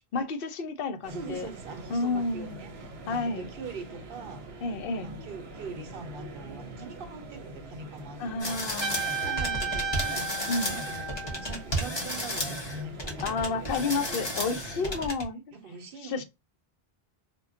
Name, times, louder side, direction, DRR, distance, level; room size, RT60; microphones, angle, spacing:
voice 1, 0.1-1.5 1.9-2.6 3.1-3.5 4.6-5.1 8.2-9.1 10.5-10.8 13.2-15.4 16.0-16.2, left 3 dB, 65° left, 0.7 m, -31 dB
sound 1, 1.0-15.1, right 2 dB, 85° right, 1.0 m, -44 dB
voice 2, 1.1-4.6 4.9-8.6 9.1-13.9 15.5-16.2, right 3 dB, 65° right, 0.8 m, -43 dB
sound 2, 8.4-15.2, equal, 30° left, 0.7 m, -33 dB
Trumpet, 8.8-11.6, right 5 dB, 35° right, 0.6 m, -33 dB
2.2 x 2.2 x 3.6 m
omnidirectional pair, 1.0 m